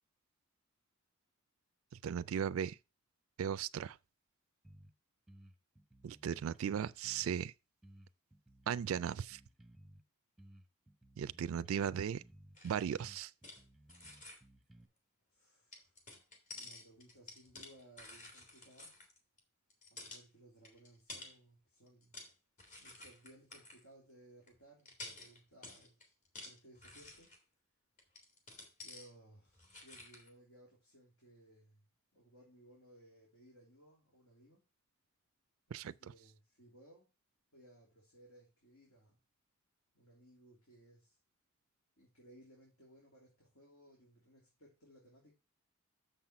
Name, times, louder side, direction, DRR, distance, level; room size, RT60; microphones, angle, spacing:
voice 1, 2.0-2.8 3.4-4.0 6.0-7.5 8.7-9.4 11.2-12.2 12.6-13.3 35.7-35.9, right 8 dB, 75° right, 0.3 m, -37 dB
sound 1, 4.6-4.9 5.3-7.5 7.8-10.0 10.4-12.6 12.9-14.9, right 1 dB, ahead, 0.8 m, -60 dB
sound 2, 12.6-13.6 13.9-14.4 15.7-19.4 19.7-20.2 20.6-21.4 21.9-22.3 22.6-23.8 24.5-24.6 24.9-27.4 28.0-29.1 29.5-30.3, left 2 dB, 40° left, 2.4 m, -52 dB
voice 2, 15.3-16.0 16.5-18.9 19.9-22.2 22.8-25.9 26.4-27.3 28.8-31.8 32.1-34.6 35.7-37.1 37.5-39.2 39.9-41.2 42.0-45.3, right 1 dB, 80° left, 3.3 m, -62 dB
6.9 x 5.7 x 5.8 m
head